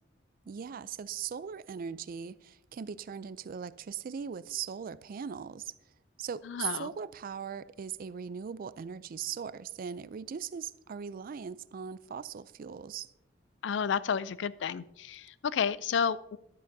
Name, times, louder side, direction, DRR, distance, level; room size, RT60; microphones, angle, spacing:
voice 1, 0.5-5.7 6.2-13.1, right 7 dB, 50° right, 0.4 m, -39 dB
voice 2, 6.4-6.9 13.6-16.4, left 7 dB, 70° left, 0.4 m, -31 dB
13.5 x 11.5 x 2.7 m
head